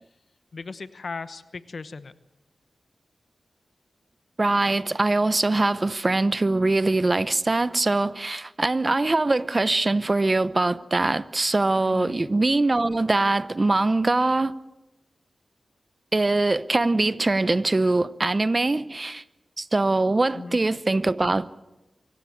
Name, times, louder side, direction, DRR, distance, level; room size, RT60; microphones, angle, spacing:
voice 1, 0.5-2.1 11.8-12.2 20.3-20.6, left 4 dB, 60° left, 0.9 m, -37 dB
voice 2, 4.4-14.5 16.1-19.2 19.6-21.5, right 2 dB, 30° right, 0.8 m, -22 dB
24.5 x 15.5 x 8.7 m
wide cardioid pair, 80°, 0 cm